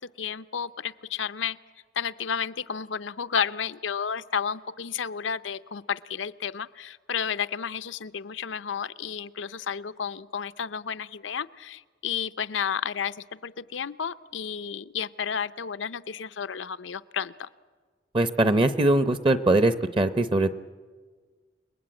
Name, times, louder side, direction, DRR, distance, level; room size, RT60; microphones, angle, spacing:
voice 1, 0.2-1.6 2.0-17.5, left 7 dB, 85° left, 14 dB, 0.7 m, -32 dB
voice 2, 18.1-20.5, right 2 dB, 30° right, 11 dB, 0.7 m, -21 dB
29.5 x 21.0 x 8.8 m, 1.5 s
head